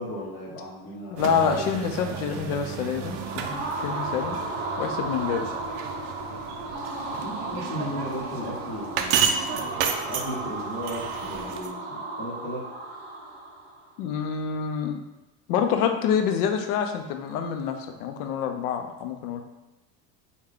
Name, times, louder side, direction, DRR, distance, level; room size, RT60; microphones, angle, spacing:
voice 1, 0.0-1.4 7.1-12.7, equal, 25° left, -9 dB, 0.9 m, -36 dB
voice 2, 1.1-4.4 4.8-5.5 14.0-15.0 15.5-19.4, left 7 dB, 80° left, 6 dB, 0.6 m, -27 dB
sound 1, 1.2-11.7, right 7 dB, 55° right, 0.5 m, -32 dB
sound 2, 2.9-13.8, right 2 dB, 20° right, 0.9 m, -34 dB
3.4 x 2.3 x 3.5 m, 0.99 s
supercardioid pair, 120°, 45 cm